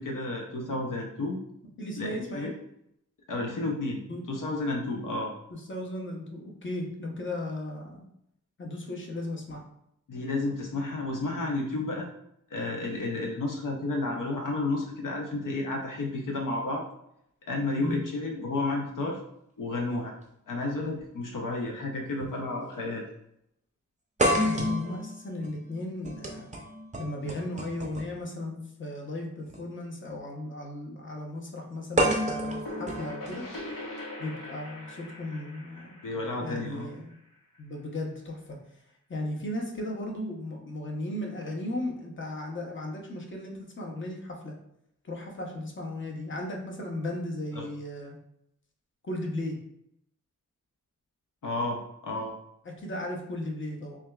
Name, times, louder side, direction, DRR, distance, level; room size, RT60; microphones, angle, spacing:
voice 1, 0.0-1.4 2.0-2.5 3.3-4.0 4.3-5.3 10.1-12.1 12.5-16.8 17.5-19.2 19.6-20.1 20.5-23.1 27.2-27.3 36.0-36.9 47.5-47.7 51.4-52.3, left 2 dB, 70° left, 0 dB, 0.6 m, -31 dB
voice 2, 1.8-2.5 4.1-4.2 5.5-8.1 8.6-9.6 17.8-18.0 24.2-26.5 27.0-33.4 34.2-36.0 36.4-37.1 37.6-38.6 39.1-44.5 45.0-48.2 49.0-49.6 52.8-54.0, left 1 dB, 35° left, 0 dB, 0.8 m, -36 dB
sound 1, 21.0-21.1 22.2-22.4 22.7-22.8 24.2-28.2 29.4-29.6 32.0-34.0, equal, 20° right, 0.6 m, -30 dB
sound 2, 32.2-37.8, left 1 dB, 90° left, 1.1 m, -42 dB
5.9 x 2.4 x 2.3 m, 0.77 s
wide cardioid pair, 115°, 33 cm